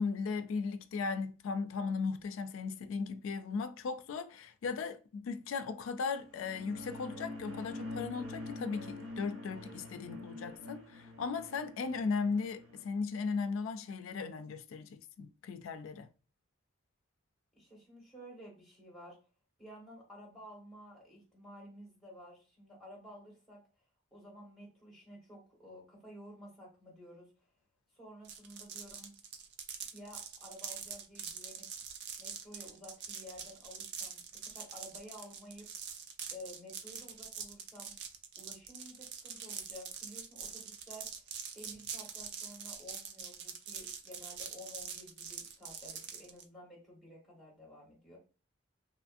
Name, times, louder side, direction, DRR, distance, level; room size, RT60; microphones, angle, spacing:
voice 1, 0.0-16.1, left 4 dB, 70° left, 0.3 m, -37 dB
sound 1, 6.2-12.9, left 2 dB, 70° right, 0.7 m, -45 dB
voice 2, 17.6-19.2 19.6-23.6 24.1-27.3 27.9-29.1 29.9-31.7 32.2-35.7 36.3-38.0 38.4-41.1 41.5-48.2, equal, ahead, 1.3 m, -52 dB
sound 2, 28.2-46.4, right 7 dB, 55° right, 0.4 m, -44 dB
2.9 x 2.5 x 2.4 m
head